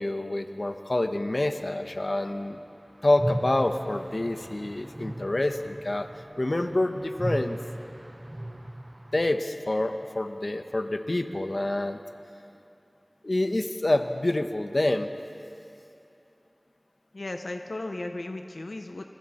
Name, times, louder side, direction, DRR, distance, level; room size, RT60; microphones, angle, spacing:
voice 1, 0.0-2.6 3.0-6.1 6.4-7.6 9.1-12.0 13.2-15.1, left 1 dB, 60° left, 7 dB, 1.1 m, -27 dB
sound 1, 3.1-9.4, right 1 dB, 30° right, 0.9 m, -37 dB
voice 2, 17.1-19.1, left 2 dB, 85° left, 5 dB, 0.8 m, -35 dB
28.5 x 22.5 x 4.3 m, 2.7 s
wide cardioid pair, 40°, 0 cm